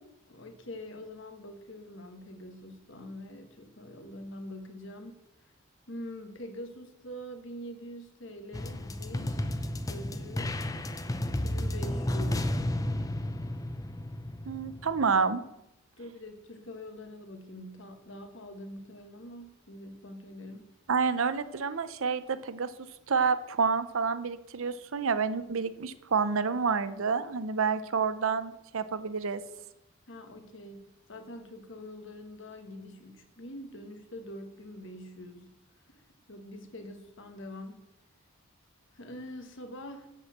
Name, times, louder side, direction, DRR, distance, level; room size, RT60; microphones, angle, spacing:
voice 1, 0.3-5.5 5.9-12.6 16.0-20.7 30.1-35.5 35.9-36.0 36.3-37.8 38.9-40.1, left 1 dB, 55° left, 6 dB, 1.3 m, -45 dB
sound 1, 8.5-15.1, left 1 dB, 15° left, 0.4 m, -32 dB
voice 2, 14.5-15.4 20.9-22.7 23.1-29.4, right 5 dB, 65° right, 13 dB, 0.6 m, -29 dB
8.0 x 6.2 x 7.1 m, 0.86 s
head